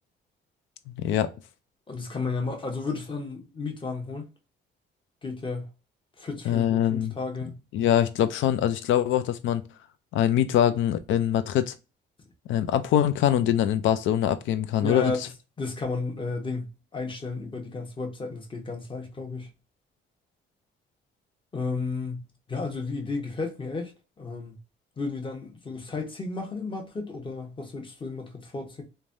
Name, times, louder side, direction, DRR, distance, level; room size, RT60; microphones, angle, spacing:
voice 1, 0.9-1.3 6.5-7.1 7.7-9.6 10.1-11.7 12.5-15.1, left 10 dB, 75° left, 0.4 m, -23 dB
voice 2, 1.9-4.3 5.2-5.7 6.2-7.6 14.8-15.3 15.6-19.5 21.5-23.9 24.2-24.6 25.0-28.8, left 3 dB, 25° left, 1.0 m, -33 dB
3.1 x 2.2 x 2.6 m
cardioid pair, 90°, 20 cm